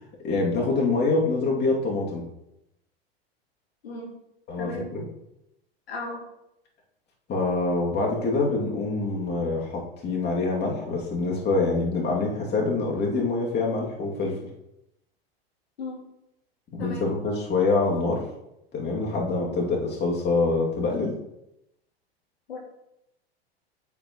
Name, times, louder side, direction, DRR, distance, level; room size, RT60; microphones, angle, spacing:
voice 1, 0.2-2.2 4.5-5.1 7.3-14.4 16.7-18.2 18.7-21.1, left 3 dB, 35° left, -2 dB, 2.4 m, -25 dB
voice 2, 4.6-4.9 5.9-6.2 15.8-16.0 16.8-17.1 19.5-19.7 22.5-22.6, left 2 dB, 80° left, -1 dB, 2.7 m, -35 dB
9.0 x 7.8 x 3.0 m, 0.85 s
hypercardioid pair, 95°, 31 cm